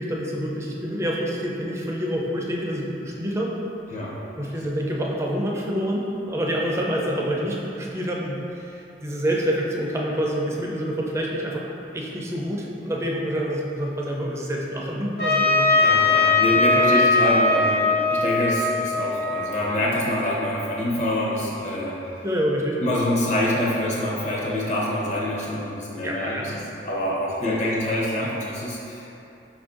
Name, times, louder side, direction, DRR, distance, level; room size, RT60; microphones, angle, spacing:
voice 1, 0.0-3.5 4.4-15.7 22.2-22.8 26.0-26.7, equal, 15° right, -2 dB, 0.4 m, -27 dB
Trumpet, 15.2-20.0, left 3 dB, 60° left, 1.1 m, -20 dB
voice 2, 15.8-22.0 22.8-26.5 26.8-29.1, left 1 dB, 40° left, -5 dB, 0.7 m, -25 dB
5.0 x 2.6 x 3.6 m, 2.9 s
head